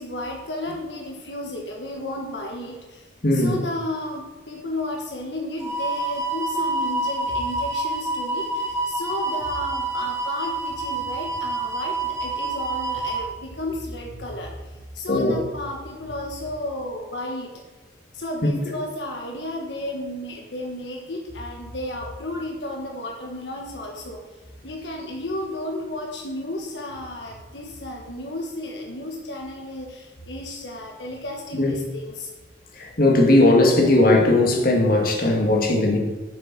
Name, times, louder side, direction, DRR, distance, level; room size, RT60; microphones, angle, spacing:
voice 1, 0.0-17.5 18.1-24.2 24.6-32.3, left 1 dB, 80° left, 0 dB, 1.5 m, -33 dB
voice 2, 3.2-3.6 15.1-15.4 31.6-31.8 32.8-36.0, left 2 dB, 55° left, 1 dB, 2.1 m, -18 dB
sound 1, 5.6-13.2, right 2 dB, 15° right, 2.3 m, -27 dB
8.6 x 6.9 x 7.6 m, 1.3 s
head